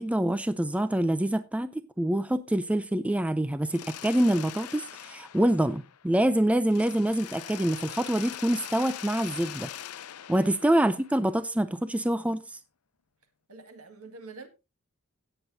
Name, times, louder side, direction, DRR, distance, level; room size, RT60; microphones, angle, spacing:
voice 1, 0.0-9.7 10.3-12.6, right 1 dB, 5° right, 0.4 m, -26 dB
Mechanisms, 3.7-6.3 6.7-11.5, left 11 dB, 80° left, 0.6 m, -42 dB
voice 2, 13.5-14.5, right 3 dB, 70° right, 2.0 m, -46 dB
17.0 x 7.9 x 2.7 m
head